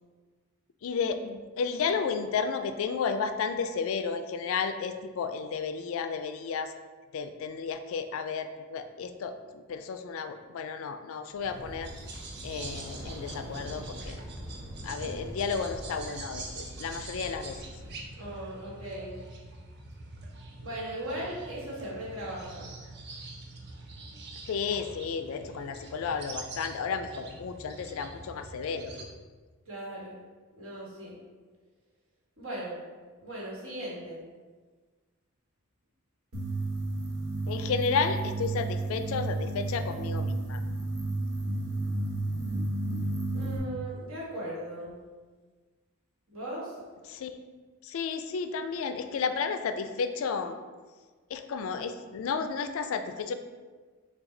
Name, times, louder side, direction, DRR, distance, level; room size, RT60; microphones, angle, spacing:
voice 1, 0.8-6.7 7.1-11.9 12.4-14.2 14.8-17.6 24.5-28.9 37.5-40.6 47.1-47.4 47.8-50.6 51.3-53.3, left 5 dB, 70° left, 9 dB, 0.3 m, -32 dB
sound 1, 11.3-18.3, equal, 15° right, 1.1 m, -44 dB
sound 2, 11.4-29.1, right 2 dB, 50° right, 0.5 m, -44 dB
voice 2, 18.2-19.2 20.6-22.7 29.7-30.2 30.6-31.2 32.4-32.8 33.2-34.2 43.3-45.0 46.3-46.7, right 1 dB, 65° right, -5 dB, 1.4 m, -38 dB
sound 3, 36.3-43.6, right 2 dB, 85° right, 0.9 m, -32 dB
5.7 x 2.3 x 3.8 m, 1.4 s
head